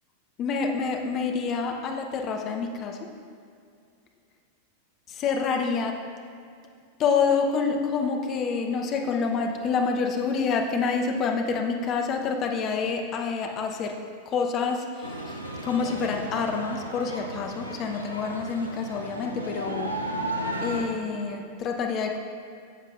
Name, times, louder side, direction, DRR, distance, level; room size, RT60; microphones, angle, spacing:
voice 1, 0.4-3.1 5.1-6.0 7.0-13.9 14.3-15.4 15.6-19.9 20.6-22.2, left 5 dB, 35° left, 3 dB, 0.9 m, -27 dB
sound 1, 15.0-20.8, right 1 dB, 85° right, 0.7 m, -34 dB
12.5 x 7.4 x 2.5 m, 2.3 s
figure-of-eight pair, 90°, 0 cm